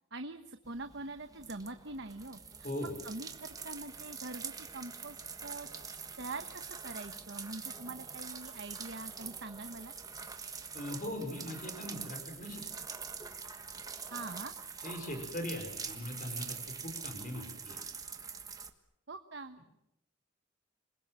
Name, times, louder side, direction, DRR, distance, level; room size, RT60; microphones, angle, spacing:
voice 1, 0.1-2.4 2.8-5.7 6.2-9.9 14.1-14.5 19.1-19.6, right 2 dB, 60° right, 8 dB, 1.2 m, -44 dB
sound 1, 0.7-18.7, right 5 dB, 20° right, 1.5 m, -45 dB
voice 2, 2.6-3.0 10.7-12.6 14.8-17.8, left 1 dB, 45° left, 5 dB, 5.2 m, -40 dB
27.5 x 21.0 x 7.7 m, 0.83 s
head